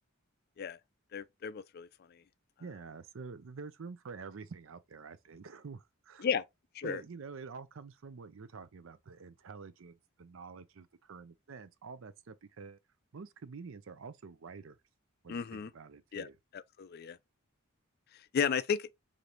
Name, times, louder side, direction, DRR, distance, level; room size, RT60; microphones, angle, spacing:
voice 1, 1.1-1.9 6.2-6.4 6.7-7.0 15.3-15.7 16.1-16.3 16.5-17.2 18.3-18.9, left 6 dB, 50° left, 0.3 m, -33 dB
voice 2, 2.6-6.3 6.8-12.8 13.1-14.8 15.2-16.4, right 5 dB, 65° right, 0.5 m, -48 dB
5.0 x 2.7 x 3.0 m
head